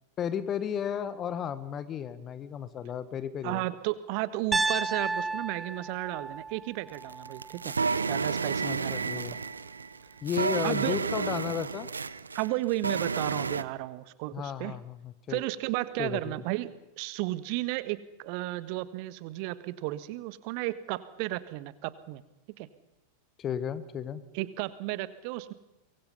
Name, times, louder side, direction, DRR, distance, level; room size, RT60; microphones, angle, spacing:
voice 1, 0.2-3.6 8.6-9.4 10.2-11.9 14.3-15.4 16.0-16.4 23.4-24.2, left 8 dB, 30° left, 15 dB, 1.3 m, -34 dB
voice 2, 3.4-7.7 8.0-9.4 10.6-11.0 12.3-14.7 15.3-22.2 22.6-22.7 24.3-25.5, right 17 dB, 45° right, 15 dB, 1.3 m, -33 dB
Piano, 4.5-8.6, right 3 dB, 10° right, 0.8 m, -33 dB
sound 1, 6.9-13.6, right 4 dB, 75° right, 0.7 m, -31 dB
24.0 x 23.0 x 5.6 m, 0.96 s
figure-of-eight pair, 90°, 0 cm